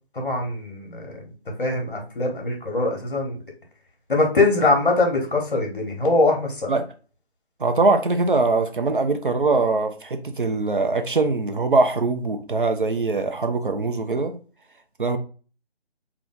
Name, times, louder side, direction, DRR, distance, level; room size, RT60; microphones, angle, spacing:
voice 1, 0.1-1.3 1.6-3.4 4.1-6.7, left 2 dB, 50° left, 2 dB, 1.1 m, -22 dB
voice 2, 7.6-14.4 15.0-15.2, right 3 dB, 50° right, 6 dB, 0.4 m, -22 dB
2.5 x 2.4 x 3.7 m, 0.38 s
figure-of-eight pair, 160°, 33 cm